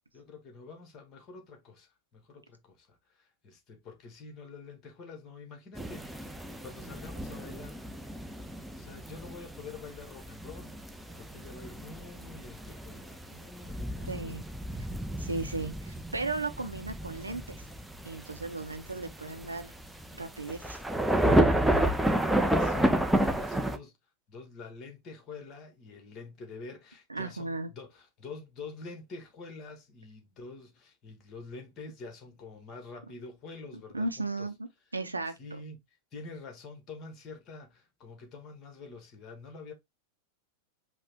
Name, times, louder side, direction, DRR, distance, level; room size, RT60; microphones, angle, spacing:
voice 1, 0.1-7.8 8.7-10.7 11.2-14.4 22.3-23.9 24.3-34.5 35.4-35.8 36.1-39.7, left 3 dB, 30° left, 1.2 m, -47 dB
sound 1, 5.7-23.8, right 1 dB, 5° right, 0.5 m, -31 dB
voice 2, 14.0-14.4 15.2-17.6 18.0-19.7 20.1-20.8 27.1-27.7 33.9-34.7 34.9-35.4, right 3 dB, 80° right, 0.6 m, -35 dB
5.2 x 2.1 x 3.4 m
figure-of-eight pair, 90°, 0 cm